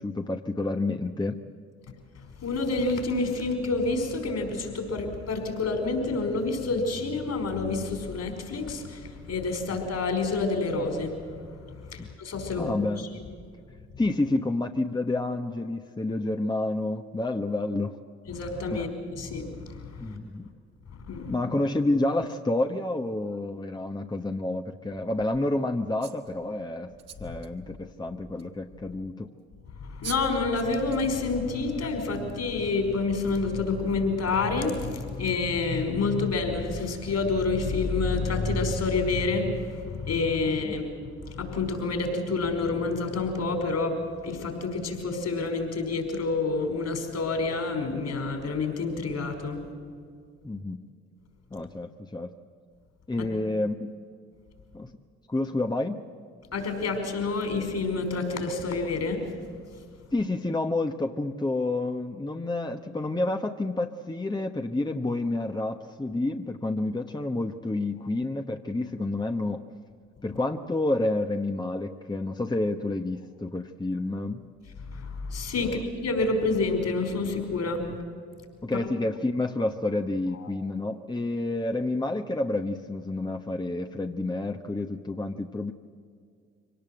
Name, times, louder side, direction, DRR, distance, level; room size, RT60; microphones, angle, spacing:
voice 1, 0.0-1.4 12.0-12.1 12.6-13.0 14.0-17.9 18.7-18.9 20.0-20.5 21.3-26.9 27.2-29.3 40.6-40.7 50.4-50.8 51.5-52.3 53.1-53.9 54.7-54.9 55.3-56.0 60.1-69.6 70.2-74.4 75.6-75.8 78.6-85.7, left 2 dB, 15° left, 5 dB, 1.1 m, -29 dB
voice 2, 2.2-11.2 11.9-12.7 18.3-20.2 21.1-21.3 29.8-49.6 53.2-53.3 56.5-59.2 74.9-77.9 80.4-80.5, left 3 dB, 60° left, 5 dB, 5.2 m, -28 dB
sound 1, 26.0-26.3 27.0-27.5 28.4-28.5 29.7-29.8 30.0-30.3 30.6-31.0 31.5-31.7, right 7 dB, 55° right, 2.1 m, -41 dB
24.0 x 18.5 x 7.9 m, 2.2 s
hypercardioid pair, 50°, 30 cm